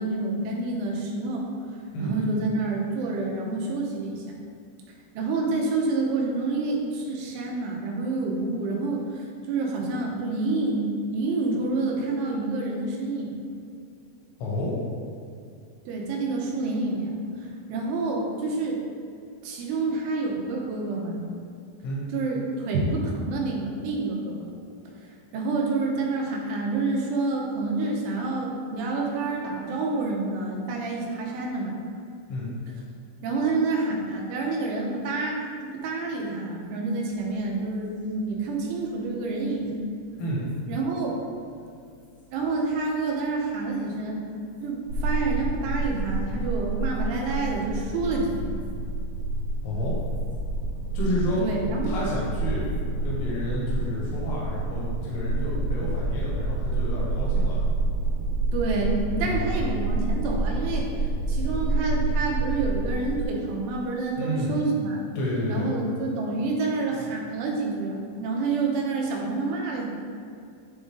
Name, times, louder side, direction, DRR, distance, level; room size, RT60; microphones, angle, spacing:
voice 1, 0.0-1.5 2.0-4.2 5.2-13.3 15.9-18.8 19.4-21.2 22.1-24.5 25.0-31.8 33.2-39.9 40.7-41.2 42.3-44.3 44.6-48.6 51.4-51.9 58.5-65.0 65.5-69.9, right 3 dB, 90° right, -2 dB, 3.5 m, -28 dB
voice 2, 14.4-14.7 21.8-22.0 32.3-32.5 40.2-40.4 49.6-50.0 50.9-51.4 51.8-52.7 53.0-57.6 59.2-59.7 64.2-64.6 65.2-65.7, left 1 dB, 80° left, -5 dB, 3.8 m, -30 dB
sound 1, 37.1-53.6, left 1 dB, 60° left, 1.3 m, -58 dB
sound 2, 44.9-63.3, right 2 dB, 75° right, 2.9 m, -28 dB
11.5 x 4.0 x 3.8 m, 2.3 s
omnidirectional pair, 5.4 m